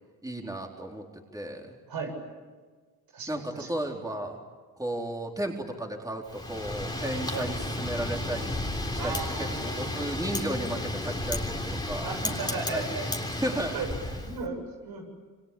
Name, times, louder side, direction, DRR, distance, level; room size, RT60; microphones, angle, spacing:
voice 1, 0.2-1.8 3.3-4.4 4.8-8.6 8.9-12.1 12.4-13.1 13.4-13.8, right 1 dB, 10° right, 1 dB, 4.1 m, -34 dB
voice 2, 3.1-3.7 7.3-7.5 8.9-10.1 12.0-13.1 13.3-13.4 13.7-13.9 14.3-15.1, right 4 dB, 75° right, 3 dB, 7.9 m, -36 dB
Wind, 6.3-14.4, left 1 dB, 10° left, 3.6 m, -33 dB
28.0 x 24.0 x 8.7 m, 1.4 s
cardioid pair, 85°, 36 cm